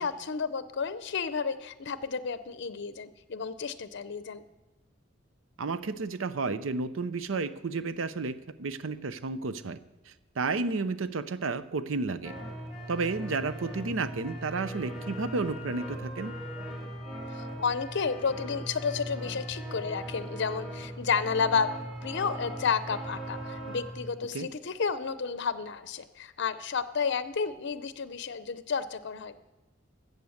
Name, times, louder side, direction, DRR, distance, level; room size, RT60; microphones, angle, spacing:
voice 1, 0.0-4.4 17.3-21.7 22.0-29.4, left 5 dB, 65° left, 13 dB, 0.6 m, -31 dB
voice 2, 5.6-9.8 10.1-12.3 12.9-16.3 24.3-24.5, right 4 dB, 80° right, 13 dB, 0.6 m, -32 dB
sound 1, 12.2-24.0, equal, 5° right, 2.7 m, -39 dB
14.0 x 7.9 x 6.5 m, 1.1 s
head